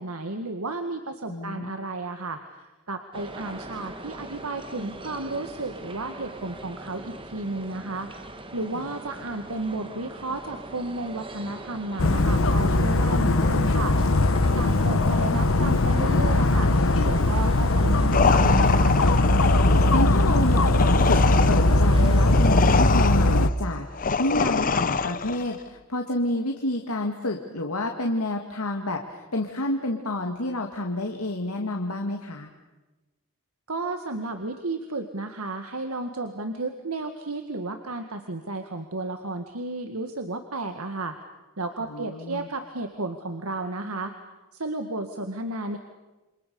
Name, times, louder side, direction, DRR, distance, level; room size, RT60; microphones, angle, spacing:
voice 1, 0.0-8.1 8.5-14.0 14.6-16.7 17.0-19.0 33.7-41.1 41.6-44.1 44.5-45.8, right 2 dB, 80° right, 6 dB, 1.8 m, -33 dB
voice 2, 1.3-1.7 8.7-8.8 14.4-15.0 19.9-32.5 41.8-42.5, left 1 dB, 85° left, 3 dB, 2.0 m, -29 dB
sound 1, 3.1-22.5, right 2 dB, 25° right, 1.6 m, -41 dB
Dog, 12.0-23.5, left 2 dB, 65° left, 1.0 m, -20 dB
sound 2, 18.1-25.5, left 5 dB, 40° left, 0.9 m, -25 dB
28.5 x 26.0 x 6.9 m, 1.1 s
head